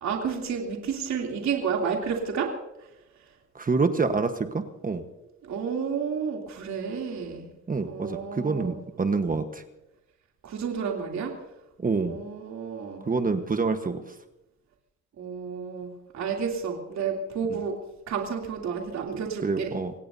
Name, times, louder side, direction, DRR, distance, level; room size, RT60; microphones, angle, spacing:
voice 1, 0.0-2.5 5.4-7.5 7.8-8.8 10.4-11.3 11.9-13.1 15.2-17.8 18.1-19.7, right 6 dB, 65° right, 0 dB, 3.1 m, -31 dB
voice 2, 3.5-5.0 7.7-9.6 11.8-12.2 13.0-14.1 19.4-19.9, right 4 dB, 30° right, 7 dB, 1.3 m, -27 dB
26.0 x 17.5 x 2.8 m, 0.91 s
cardioid pair, 90°, 30 cm